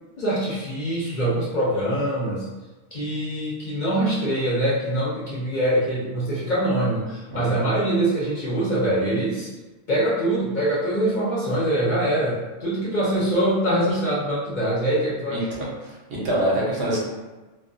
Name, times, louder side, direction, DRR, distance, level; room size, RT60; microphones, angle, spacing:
voice 1, 0.2-2.5 2.9-9.5 9.9-15.5, right 1 dB, 50° left, -7 dB, 0.6 m, -24 dB
voice 2, 15.8-17.0, right 1 dB, 70° right, -5 dB, 1.0 m, -25 dB
2.3 x 2.2 x 2.5 m, 1.2 s
omnidirectional pair, 1.2 m